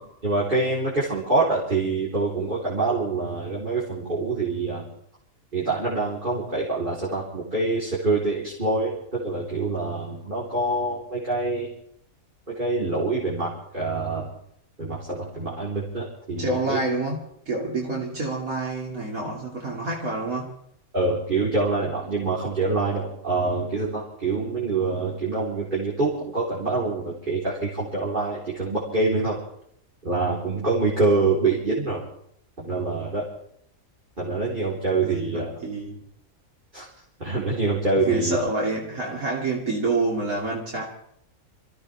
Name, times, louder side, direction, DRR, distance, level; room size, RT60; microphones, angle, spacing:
voice 1, 0.0-4.8 5.5-11.7 12.5-14.3 14.8-16.8 20.9-29.4 30.0-32.0 32.6-33.2 34.2-35.5 36.7-36.9 37.2-38.4, right 3 dB, 35° right, -7 dB, 3.8 m, -25 dB
voice 2, 16.4-17.2 17.5-20.5 35.0-36.0 38.0-40.8, right 2 dB, 70° right, -3 dB, 2.8 m, -28 dB
26.5 x 15.5 x 3.4 m, 0.71 s
omnidirectional pair, 1.5 m